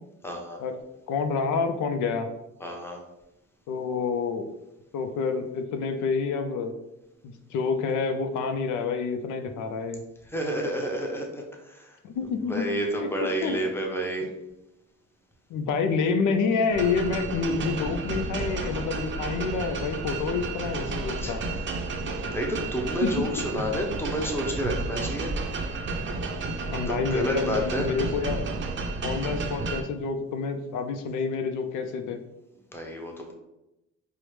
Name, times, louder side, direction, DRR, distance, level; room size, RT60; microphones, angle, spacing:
voice 1, 0.2-0.6 2.6-3.0 10.3-12.0 12.4-14.3 21.2-21.4 22.0-22.1 22.3-25.3 26.7-27.9 32.7-33.3, right 1 dB, 10° left, 1 dB, 0.7 m, -30 dB
voice 2, 1.1-2.3 3.7-4.5 4.9-6.7 7.2-10.0 12.0-12.7 13.0-13.1 13.4-13.6 14.2-14.3 15.5-21.4 23.0-23.2 23.6-23.7 26.7-28.4 29.0-32.2, left 5 dB, 80° left, 6 dB, 0.5 m, -28 dB
sound 1, 16.7-29.8, right 3 dB, 40° right, 0.5 m, -32 dB
4.6 x 2.1 x 3.2 m, 0.93 s
cardioid pair, 90°, 30 cm